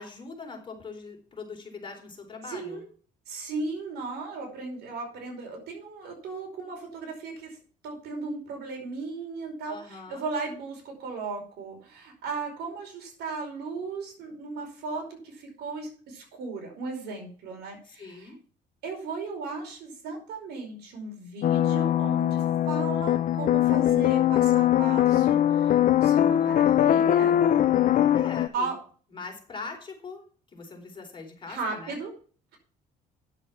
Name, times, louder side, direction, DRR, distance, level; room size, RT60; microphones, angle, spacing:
voice 1, 0.0-2.8 9.7-10.3 17.8-18.4 26.4-26.9 28.1-28.7 29.1-30.2 30.5-32.0, left 4 dB, 30° left, 2 dB, 3.8 m, -42 dB
voice 2, 2.5-2.9 3.3-7.6 7.8-18.3 18.8-27.5 28.5-28.8 31.5-32.1, right 4 dB, 75° right, 2 dB, 5.0 m, -36 dB
sound 1, 21.4-28.5, left 11 dB, 50° left, 0.7 m, -22 dB
9.9 x 7.4 x 5.9 m, 0.42 s
cardioid pair, 110°, 17 cm